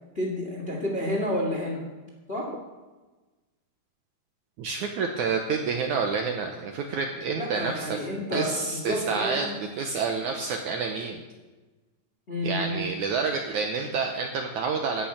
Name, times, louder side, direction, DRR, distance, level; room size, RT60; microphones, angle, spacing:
voice 1, 0.1-1.8 2.3-2.5 7.4-9.5 12.3-12.8, left 1 dB, 25° left, -1 dB, 1.3 m, -30 dB
voice 2, 4.6-8.0 8.3-11.2 12.4-15.1, right 5 dB, 70° right, 3 dB, 1.9 m, -28 dB
13.0 x 6.1 x 8.6 m, 1.2 s
omnidirectional pair, 4.3 m